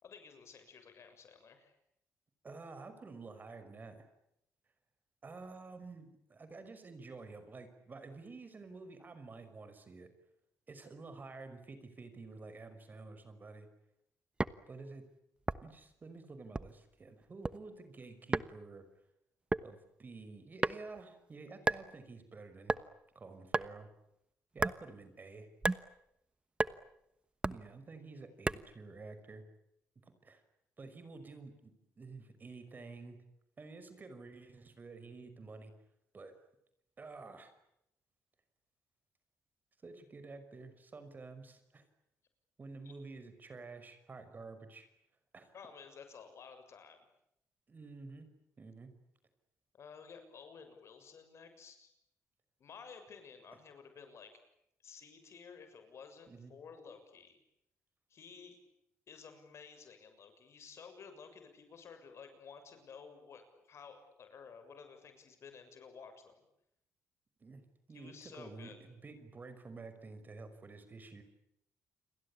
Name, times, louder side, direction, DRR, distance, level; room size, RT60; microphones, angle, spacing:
voice 1, 0.0-1.8 42.8-42.9 45.5-47.1 49.7-51.9 52.6-54.4 54.8-57.4 58.1-58.6 59.1-66.4 67.9-68.8, left 6 dB, 55° left, 8 dB, 6.9 m, -53 dB
voice 2, 2.4-4.1 5.2-10.1 10.7-13.7 14.7-15.1 15.6-18.9 19.6-22.8 23.1-23.9 24.5-25.5 27.5-29.4 30.0-30.4 30.8-33.2 33.6-35.7 36.1-36.3 37.0-37.5 39.8-41.8 42.6-44.9 45.3-45.5 47.7-48.3 48.6-48.9 56.3-56.5 67.4-67.6 67.9-71.2, right 3 dB, 35° right, 10 dB, 5.6 m, -50 dB
sound 1, 14.4-14.6 15.5-15.8 16.5-16.9 17.2-17.6 18.3-18.5 19.5-19.7 20.6-21.0 21.7-21.9 22.7-22.9 23.5-23.7 24.6-24.8 25.6-25.8 26.6-26.7 27.4-27.6 28.5-28.7, right 2 dB, 20° right, 1.1 m, -33 dB
29.5 x 22.5 x 8.7 m, 0.79 s
cardioid pair, 90°, 5 cm